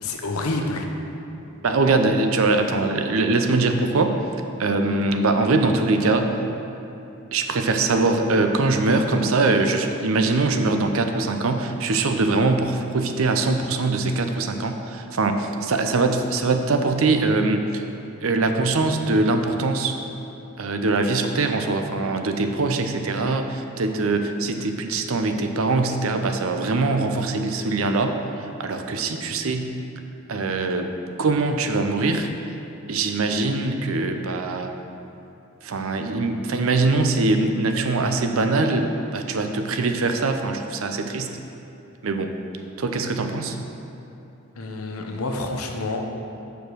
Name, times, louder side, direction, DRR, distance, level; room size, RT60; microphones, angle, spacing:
voice 1, 0.0-0.9 44.6-46.0, left 2 dB, 85° left, 2 dB, 0.8 m, -28 dB
voice 2, 1.6-4.2 4.6-6.4 7.3-17.8 18.2-20.0 20.6-28.2 28.6-29.8 30.3-30.9 31.2-32.3 32.9-34.7 35.6-41.3 42.0-42.3 42.8-43.6, right 3 dB, 70° right, 6 dB, 0.6 m, -22 dB
6.9 x 5.0 x 6.2 m, 3.0 s
head